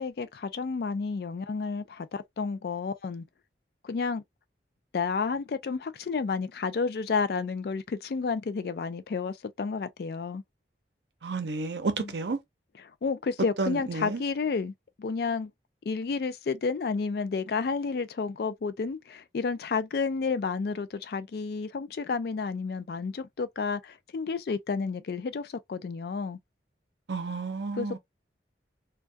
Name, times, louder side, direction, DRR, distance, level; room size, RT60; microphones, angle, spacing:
voice 1, 0.0-3.3 3.8-4.2 4.9-10.4 12.0-12.1 13.0-14.7 15.0-15.5 15.9-26.4 27.8-28.0, left 4 dB, 60° left, 0.3 m, -31 dB
voice 2, 11.2-12.4 13.6-14.2 27.1-28.0, right 3 dB, 75° right, 0.6 m, -31 dB
2.3 x 2.2 x 2.4 m
head